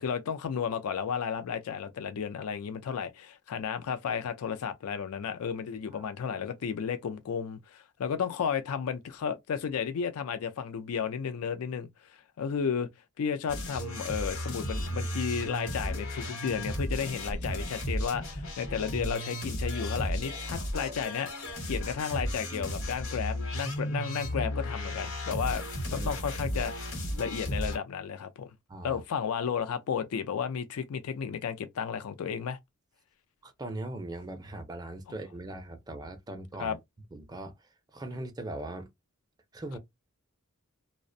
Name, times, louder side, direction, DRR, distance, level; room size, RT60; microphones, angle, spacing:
voice 1, 0.0-12.9 13.2-25.6 25.9-28.5 28.8-32.6 36.6-36.8, left 7 dB, 80° left, 0.4 m, -33 dB
voice 2, 5.9-6.4 25.9-26.1 28.7-29.0 33.4-36.8 37.1-37.5 37.9-38.9 39.5-39.8, right 1 dB, 20° right, 0.4 m, -40 dB
sound 1, 13.5-27.8, equal, 65° left, 1.0 m, -34 dB
2.4 x 2.1 x 2.6 m
head